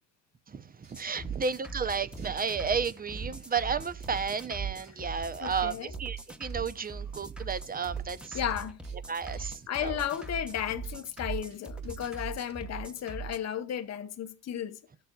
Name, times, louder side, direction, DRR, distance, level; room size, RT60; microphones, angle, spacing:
voice 1, 0.5-8.4 9.1-10.0, right 6 dB, 20° right, 0.6 m, -33 dB
sound 1, 0.8-1.6 1.8-4.9 5.2-8.2 8.5-12.8, right 5 dB, 55° right, 4.1 m, -43 dB
sound 2, 0.9-13.4, right 4 dB, ahead, 1.0 m, -41 dB
voice 2, 5.4-5.9 8.3-8.8 9.4-14.8, left 10 dB, 40° left, 0.8 m, -34 dB
15.5 x 6.8 x 2.3 m
hypercardioid pair, 60°, 40 cm